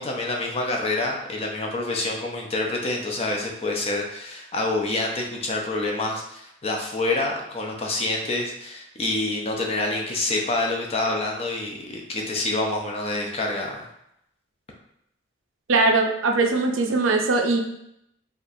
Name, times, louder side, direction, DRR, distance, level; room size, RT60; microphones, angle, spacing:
voice 1, 0.0-13.9, left 2 dB, 30° left, 0 dB, 0.5 m, -27 dB
voice 2, 15.7-17.6, right 3 dB, 80° right, 3 dB, 0.5 m, -20 dB
4.2 x 2.4 x 2.6 m, 0.78 s
head